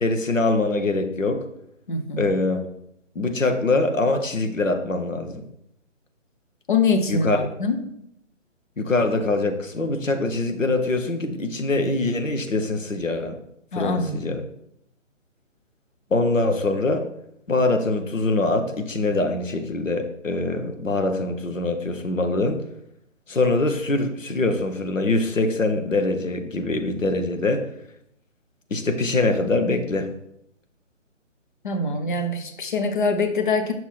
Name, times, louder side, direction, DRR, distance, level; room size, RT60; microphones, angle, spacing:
voice 1, 0.0-1.4 2.2-2.6 3.1-5.4 7.1-7.4 8.8-13.4 13.7-14.4 16.1-17.0 17.5-22.6 23.3-27.6 28.7-30.1, left 2 dB, 80° left, 5 dB, 1.0 m, -23 dB
voice 2, 1.9-2.3 6.7-7.8 13.7-14.4 31.6-33.7, left 3 dB, 40° left, 7 dB, 0.7 m, -24 dB
6.1 x 3.7 x 4.2 m, 0.77 s
figure-of-eight pair, 140°, 38 cm